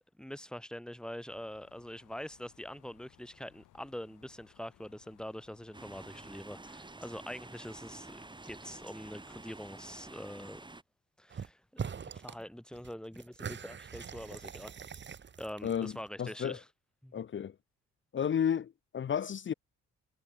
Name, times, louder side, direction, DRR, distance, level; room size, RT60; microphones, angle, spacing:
voice 1, 0.2-8.2 8.4-10.6 11.2-11.8 12.1-14.7 15.4-16.6 17.0-17.1, equal, 5° left, 6.4 m, -44 dB
sound 1, 1.3-6.4, left 15 dB, 85° left, 7.3 m, -64 dB
sound 2, 5.7-10.8, right 2 dB, 15° right, 5.0 m, -49 dB
sound 3, 11.3-11.5 11.8-12.4 12.7-16.1, right 7 dB, 35° right, 1.3 m, -43 dB
voice 2, 15.6-15.9 16.2-16.6 17.1-17.5 18.1-19.5, left 8 dB, 40° left, 0.8 m, -32 dB
cardioid pair, 90°, 30 cm